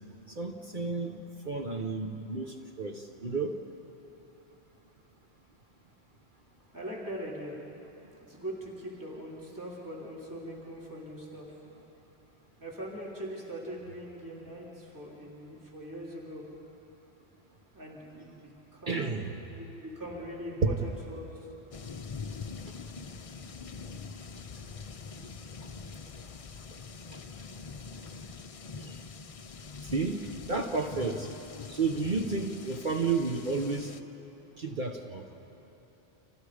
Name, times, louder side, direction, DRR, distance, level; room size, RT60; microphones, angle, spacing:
voice 1, 0.3-1.2 1.4-3.6 18.9-19.4 20.6-20.8 22.7-22.8 27.1-27.2 28.8-29.0 29.8-31.3 31.7-33.9 34.6-35.3, right 4 dB, 50° right, 3 dB, 1.2 m, -31 dB
voice 2, 6.7-7.6 8.3-11.5 12.6-16.4 17.7-19.2 19.5-21.3, right 1 dB, 15° right, -5 dB, 3.4 m, -41 dB
sound 1, 21.7-34.0, left 5 dB, 40° left, 0.6 m, -44 dB
30.0 x 27.0 x 5.1 m, 3.0 s
omnidirectional pair, 1.1 m